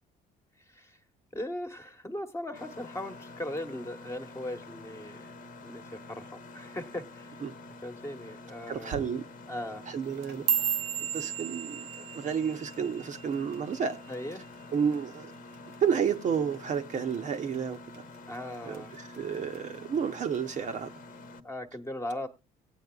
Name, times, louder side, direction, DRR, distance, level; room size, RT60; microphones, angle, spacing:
voice 1, 0.7-1.0 1.3-5.3 5.6-5.8 6.1-7.4 7.8-9.1 9.5-9.8 14.1-14.4 18.3-18.9 19.5-19.7 21.4-22.3, left 1 dB, 15° left, 1.3 m, -38 dB
Mechanisms, 2.5-21.4, left 2 dB, 55° left, 1.1 m, -48 dB
voice 2, 8.7-9.2 9.9-10.5 11.1-14.0 14.7-15.3 15.8-18.0 18.6-20.9, right 7 dB, 45° right, 1.0 m, -31 dB
sound 1, 10.0-14.5 14.7-15.2 15.5-16.0 16.3-16.6 17.1-17.6 17.9-18.8 19.1-19.6 20.4-20.5, right 8 dB, 85° right, 0.7 m, -34 dB
18.0 x 8.7 x 2.3 m
cardioid pair, 110°, 17 cm